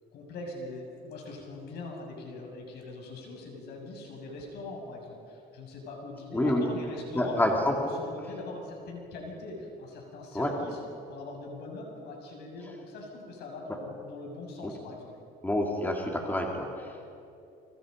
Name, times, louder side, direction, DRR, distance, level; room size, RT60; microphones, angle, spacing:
voice 1, 0.1-10.8 11.1-15.1, left 2 dB, 75° left, 1 dB, 7.1 m, -42 dB
voice 2, 6.3-6.7 7.1-7.7 10.3-10.5 14.6-14.7 15.4-17.0, left 1 dB, 10° left, 0 dB, 3.5 m, -27 dB
29.5 x 25.5 x 5.5 m, 2.6 s
cardioid pair, 110°, 17 cm